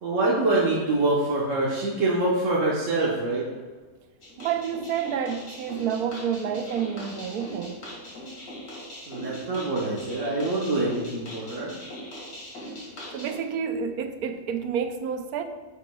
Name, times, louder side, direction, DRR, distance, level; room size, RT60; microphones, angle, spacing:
voice 1, 0.0-3.4 9.1-11.7, right 2 dB, 60° right, 1.4 m, -25 dB
sound 1, 4.2-13.4, equal, 85° left, 2.6 m, -41 dB
voice 2, 4.4-7.8 13.1-15.4, right 7 dB, 85° right, 1.1 m, -29 dB
9.9 x 7.0 x 2.3 m
omnidirectional pair, 1.6 m